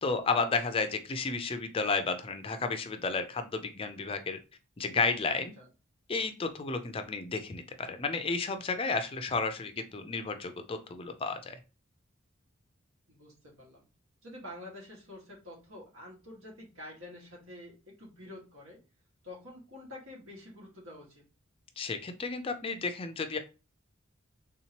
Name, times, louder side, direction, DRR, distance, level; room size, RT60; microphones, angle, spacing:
voice 1, 0.0-4.4 4.8-5.5 6.1-11.6 21.8-23.4, left 4 dB, 25° left, 8 dB, 0.4 m, -32 dB
voice 2, 13.1-13.9 14.2-18.8 19.2-21.2, left 1 dB, 80° right, -2 dB, 1.6 m, -48 dB
3.6 x 2.9 x 2.8 m, 0.30 s
head